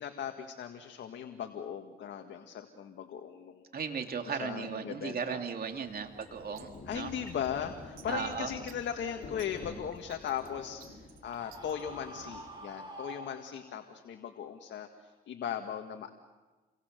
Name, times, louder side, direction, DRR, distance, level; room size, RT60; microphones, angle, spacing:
voice 1, 0.0-3.6 4.2-5.4 6.9-16.1, left 8 dB, 65° left, 5 dB, 1.8 m, -38 dB
voice 2, 3.7-7.1 8.1-8.5, right 6 dB, 50° right, 5 dB, 2.7 m, -36 dB
Rain, 5.7-12.9, left 3 dB, 50° left, 7.5 m, -49 dB
sound 1, 6.2-11.8, right 11 dB, 90° right, 2.6 m, -56 dB
Screaming, 11.2-13.9, right 1 dB, 20° right, 7.5 m, -47 dB
28.5 x 24.5 x 6.7 m, 1.3 s
cardioid pair, 90°, 20 cm